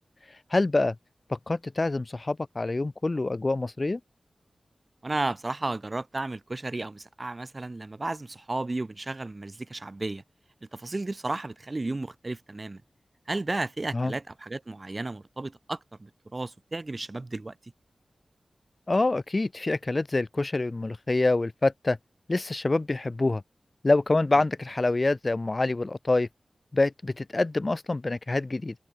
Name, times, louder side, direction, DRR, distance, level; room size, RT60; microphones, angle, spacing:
voice 1, 0.5-0.9 1.3-4.0 13.9-14.1 18.9-22.0 22.3-23.4 23.8-26.3 26.7-28.7, left 2 dB, 45° left, 1.5 m, -26 dB
voice 2, 5.0-10.2 10.7-12.8 13.3-17.5, right 2 dB, 40° right, 2.1 m, -33 dB
cardioid pair, 40°, 0 cm